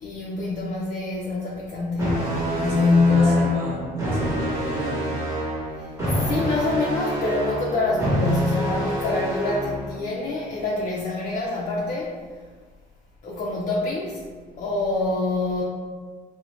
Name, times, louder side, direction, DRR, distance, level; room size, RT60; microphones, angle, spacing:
voice 1, 0.0-2.3 2.6-3.7 5.8-12.2 13.2-14.3 14.6-15.6, left 3 dB, 50° left, -4 dB, 0.4 m, -25 dB
sound 1, 2.0-10.0, right 1 dB, 20° right, 0.9 m, -26 dB
voice 2, 2.6-5.1, equal, 65° right, -5 dB, 1.0 m, -33 dB
2.5 x 2.1 x 3.1 m, 1.5 s
cardioid pair, 110°, 17 cm